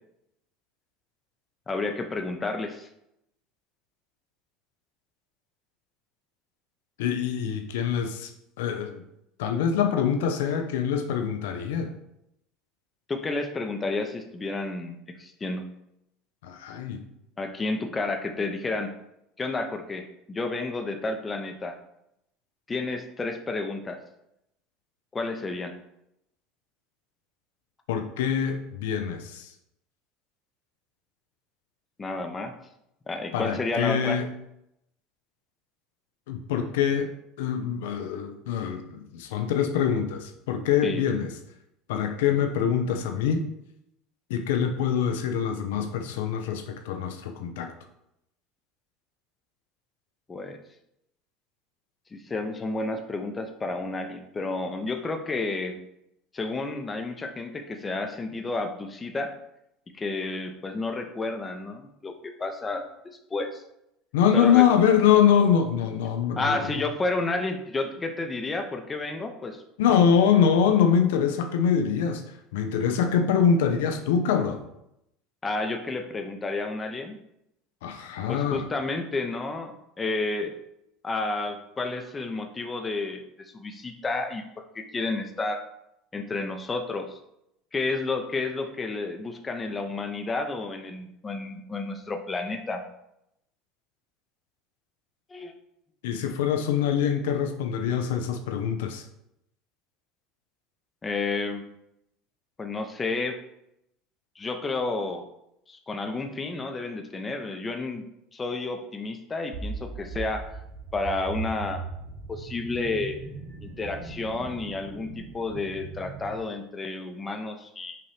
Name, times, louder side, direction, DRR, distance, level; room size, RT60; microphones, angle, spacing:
voice 1, 1.7-2.9 13.1-15.6 17.4-18.9 19.4-21.8 22.7-24.0 25.1-25.7 32.0-32.5 33.1-34.2 40.8-41.0 50.3-50.6 52.1-55.8 56.3-59.3 59.9-63.6 64.3-64.7 66.4-69.6 75.4-77.2 78.3-80.6 81.0-85.6 86.1-87.2 87.7-92.8 95.3-95.5 101.0-101.6 102.6-103.4 104.4-105.2 105.7-110.6 110.9-111.8 112.3-113.2 113.6-118.0, left 3 dB, 25° left, 5 dB, 0.7 m, -31 dB
voice 2, 7.0-8.3 8.6-9.0 9.4-11.9 16.4-17.0 27.9-29.5 33.3-34.3 36.3-37.1 37.4-41.3 41.9-43.5 44.3-47.7 64.1-66.7 69.8-72.2 72.5-74.7 77.8-78.7 96.0-99.0, left 8 dB, 75° left, 6 dB, 0.6 m, -24 dB
sound 1, 109.5-116.4, right 4 dB, 55° right, 0.9 m, -39 dB
5.5 x 2.6 x 3.5 m, 0.81 s
hypercardioid pair, 85°, 0 cm